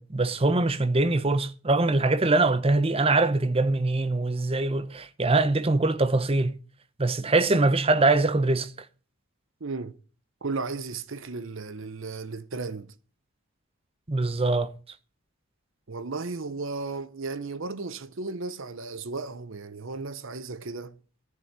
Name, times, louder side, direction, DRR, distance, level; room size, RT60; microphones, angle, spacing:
voice 1, 0.0-6.5 7.0-8.7 14.1-14.7, right 2 dB, 25° right, 0.7 m, -23 dB
voice 2, 9.6-10.0 10.4-12.9 15.9-21.0, right 3 dB, 60° right, 0.8 m, -35 dB
11.0 x 8.4 x 6.7 m
head